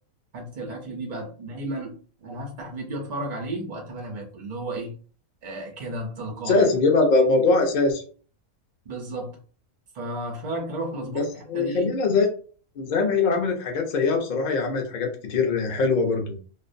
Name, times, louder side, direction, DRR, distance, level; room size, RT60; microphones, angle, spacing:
voice 1, 0.3-5.0 5.4-6.6 8.9-9.4 9.9-11.9, right 1 dB, 70° right, 0 dB, 0.4 m, -33 dB
voice 2, 6.5-8.0 11.1-11.2 11.5-12.3 12.8-16.3, left 3 dB, 55° left, 3 dB, 0.5 m, -22 dB
2.4 x 2.1 x 2.5 m, 0.41 s
omnidirectional pair, 1.5 m